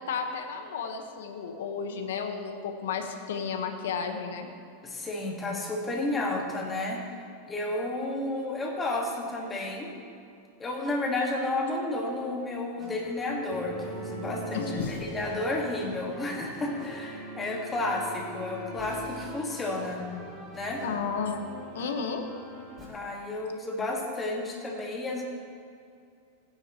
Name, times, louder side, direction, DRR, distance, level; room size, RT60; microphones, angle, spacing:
voice 1, 0.1-4.5 14.5-15.0 20.8-21.4 21.7-22.2, left 6 dB, 85° left, 5 dB, 1.2 m, -33 dB
voice 2, 4.8-7.0 7.5-9.9 10.6-20.0 20.5-20.8 22.9-25.2, left 2 dB, 15° left, -1 dB, 1.7 m, -32 dB
sound 1, 12.8-22.9, right 2 dB, 15° right, 2.5 m, -44 dB
Bowed string instrument, 13.5-20.3, equal, 35° right, 2.9 m, -43 dB
16.5 x 9.6 x 3.0 m, 2.5 s
supercardioid pair, 150°, 0 cm